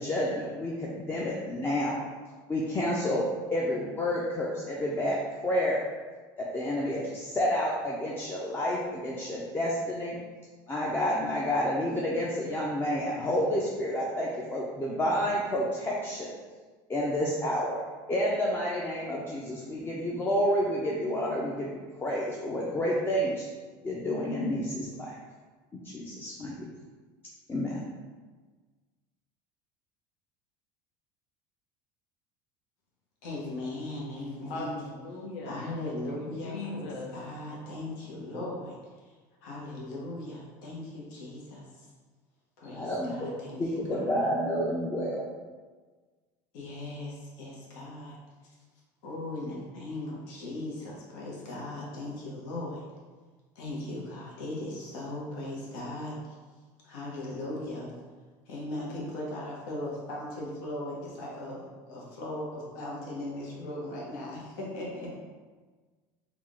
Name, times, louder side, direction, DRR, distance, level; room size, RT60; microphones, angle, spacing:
voice 1, 0.0-2.0 2.5-3.2 3.5-5.2 5.4-5.8 6.4-10.2 10.7-16.3 16.9-17.8 18.1-23.5 23.8-25.2 25.7-26.5 27.5-27.8 42.7-43.2 43.6-45.2, equal, 20° left, -4 dB, 0.5 m, -29 dB
voice 2, 33.2-34.8 35.4-39.1 39.4-41.9 42.6-44.3 46.5-48.2 48.4-48.5 49.0-52.8 53.5-56.3 56.8-57.9 58.5-65.2, left 1 dB, 80° left, -4 dB, 1.1 m, -38 dB
voice 3, 34.5-35.6 36.2-37.1, left 2 dB, 60° left, -1 dB, 0.7 m, -39 dB
3.6 x 2.4 x 3.6 m, 1.4 s
supercardioid pair, 110°, 11 cm